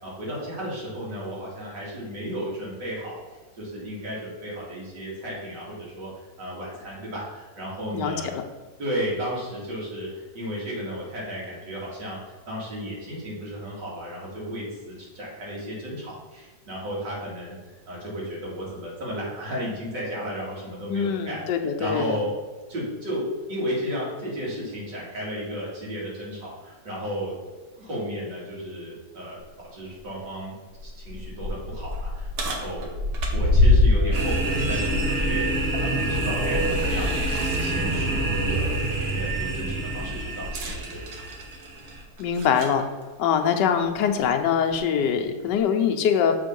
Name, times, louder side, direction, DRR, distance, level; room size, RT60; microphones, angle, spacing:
voice 1, 0.0-3.2 3.6-6.1 6.4-8.3 8.8-12.2 12.5-22.3 22.7-27.3 27.8-30.5 30.8-32.9 33.3-37.1 37.6-38.8 39.1-41.0, equal, 85° right, -5 dB, 2.9 m, -33 dB
voice 2, 7.9-8.4 20.9-22.2 42.2-42.8 43.2-46.3, left 7 dB, 85° left, 5 dB, 1.3 m, -23 dB
sound 1, 29.4-29.5 30.0-30.1 30.7-37.4 37.8-38.0 40.4-42.8 43.8-43.9 44.7-44.8, left 2 dB, 65° right, 1.4 m, -25 dB
sound 2, 34.1-42.0, right 2 dB, 40° right, 1.1 m, -27 dB
7.1 x 3.8 x 5.3 m, 1.3 s
omnidirectional pair, 1.8 m